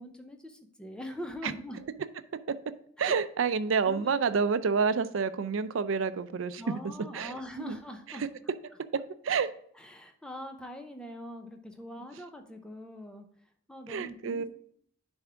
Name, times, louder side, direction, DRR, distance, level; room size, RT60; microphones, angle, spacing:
voice 1, 0.0-1.8 3.0-3.2 3.8-4.2 6.6-8.2 9.8-13.3 13.7-14.6, equal, 5° left, 0.7 m, -43 dB
voice 2, 3.0-6.8 7.1-7.8 8.2-8.3 9.2-9.5 13.9-14.5, right 5 dB, 75° right, 0.4 m, -28 dB
10.5 x 3.5 x 3.4 m
head